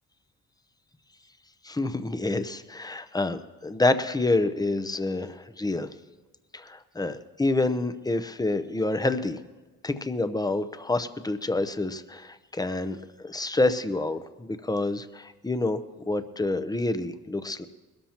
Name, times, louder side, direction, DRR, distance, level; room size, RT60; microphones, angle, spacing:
voice 1, 1.6-5.9 6.5-9.4 9.8-15.8 16.1-17.7, left 2 dB, 10° left, 11 dB, 0.7 m, -28 dB
21.0 x 13.0 x 3.0 m, 1.2 s
cardioid pair, 75°, 35 cm